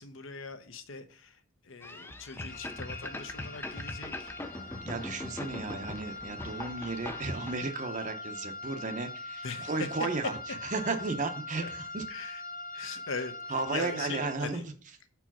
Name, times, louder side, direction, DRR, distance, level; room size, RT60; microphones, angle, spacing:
voice 1, 0.0-1.4 1.6-4.8 9.4-9.7 11.6-11.7 12.1-12.4 12.7-14.6, left 4 dB, 60° left, 9 dB, 0.8 m, -41 dB
sound 1, 1.8-7.5, left 2 dB, 10° left, 0.3 m, -41 dB
sound 2, 2.5-14.3, left 2 dB, 40° left, 1.2 m, -42 dB
voice 2, 4.8-12.1 13.5-14.6, right 3 dB, 35° right, 7 dB, 0.7 m, -34 dB
5.0 x 4.6 x 5.9 m, 0.42 s
head